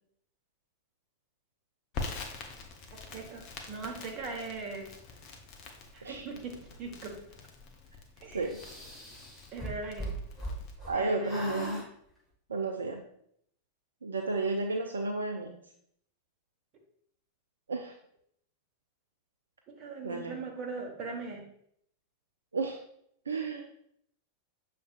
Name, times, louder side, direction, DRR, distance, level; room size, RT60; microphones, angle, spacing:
Crackle, 1.9-10.7, left 4 dB, 40° left, 0.7 m, -45 dB
voice 1, 2.9-4.9 5.9-7.2 8.2-8.5 9.5-10.1 10.9-11.8 19.7-21.4, right 3 dB, 35° right, 2 dB, 1.1 m, -40 dB
sound 1, 8.5-11.0 11.2-11.9, right 1 dB, 10° left, 1.5 m, -39 dB
voice 2, 10.9-11.8 12.5-13.0 14.0-15.6 17.7-18.0 20.0-20.3 22.5-22.8 23.3-23.7, right 3 dB, 70° right, 3 dB, 0.4 m, -32 dB
6.5 x 3.2 x 2.4 m, 0.70 s
figure-of-eight pair, 90°, 0 cm